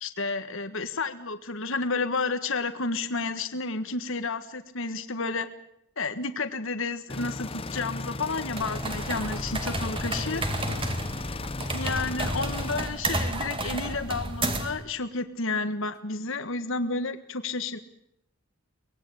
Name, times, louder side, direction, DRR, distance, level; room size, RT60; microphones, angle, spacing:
voice 1, 0.0-5.5 6.0-10.4 11.7-17.8, left 3 dB, 60° left, 9 dB, 1.6 m, -31 dB
sound 1, 7.1-12.9, left 2 dB, 25° left, 0.8 m, -36 dB
sound 2, 8.5-14.8, right 1 dB, 25° right, 2.2 m, -31 dB
voice 2, 10.0-11.3, left 2 dB, 80° left, 8 dB, 1.6 m, -45 dB
24.0 x 20.0 x 8.5 m, 0.76 s
head